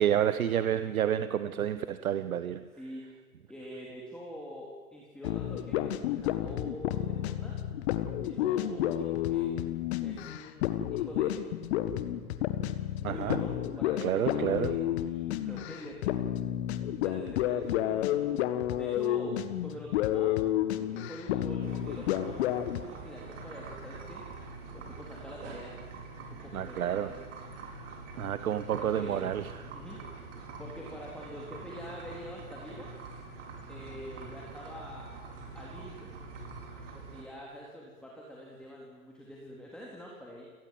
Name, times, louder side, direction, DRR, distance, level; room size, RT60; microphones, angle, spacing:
voice 1, 0.0-2.6 13.0-13.4 14.0-14.7 26.5-27.1 28.2-29.7, right 10 dB, 70° right, 13 dB, 1.1 m, -29 dB
voice 2, 2.8-3.2 3.5-7.6 8.2-9.7 10.0-11.4 13.0-16.2 17.0-20.4 20.8-24.3 24.7-25.7 26.3-27.3 28.7-29.4 29.7-32.9 33.7-36.1 36.9-40.4, equal, ahead, -4 dB, 3.9 m, -45 dB
sound 1, 5.2-23.0, left 12 dB, 45° left, 1.7 m, -31 dB
sound 2, 21.6-37.2, right 3 dB, 55° right, 5.6 m, -45 dB
29.0 x 18.5 x 7.9 m, 1.5 s
figure-of-eight pair, 115°, 44 cm